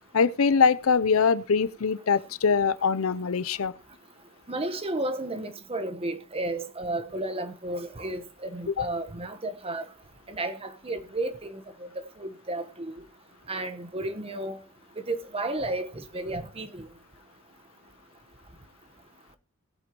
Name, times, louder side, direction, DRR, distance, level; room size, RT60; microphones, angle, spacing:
voice 1, 0.1-3.7 8.8-8.9, left 5 dB, 70° left, 0.6 m, -23 dB
voice 2, 4.5-9.9 10.3-11.9 12.2-13.0 13.5-14.6 15.0-16.9, right 2 dB, 25° right, 1.2 m, -33 dB
20.0 x 8.0 x 3.0 m
head